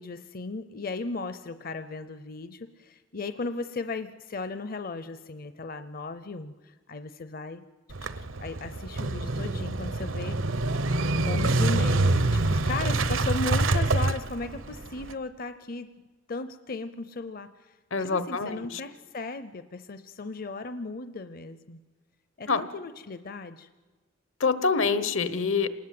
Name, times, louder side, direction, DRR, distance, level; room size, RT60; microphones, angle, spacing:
voice 1, 0.0-7.6 8.0-10.4 11.2-15.9 16.3-21.8 22.4-23.7, left 3 dB, 45° left, 11 dB, 0.6 m, -36 dB
Motorcycle / Engine starting, 7.9-15.1, right 2 dB, 80° right, 1.0 m, -26 dB
voice 2, 17.9-18.8 22.5-22.6 24.4-25.7, left 4 dB, 75° left, 13 dB, 1.2 m, -26 dB
27.5 x 19.5 x 7.7 m, 1.3 s
head